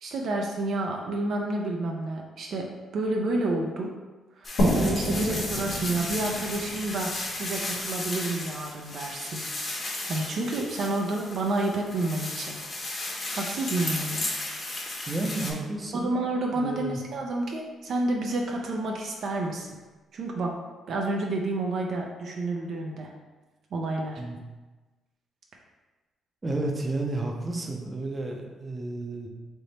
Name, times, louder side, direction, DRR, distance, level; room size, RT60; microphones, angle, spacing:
voice 1, 0.0-2.7 2.9-3.9 4.4-7.1 7.4-9.4 10.1-12.6 13.3-14.3 15.9-19.8 20.1-20.5 20.9-23.1 23.7-24.2, right 2 dB, 65° right, 0 dB, 0.5 m, -29 dB
sound 1, 4.4-15.5, left 2 dB, 35° left, 1.0 m, -34 dB
sound 2, 4.6-8.1, equal, 80° left, 1.3 m, -29 dB
voice 2, 15.1-16.2 16.5-17.0 24.2-24.4 26.4-29.3, right 2 dB, 25° right, 1 dB, 0.6 m, -31 dB
3.4 x 2.9 x 4.1 m, 1.2 s
cardioid pair, 90°, 0 cm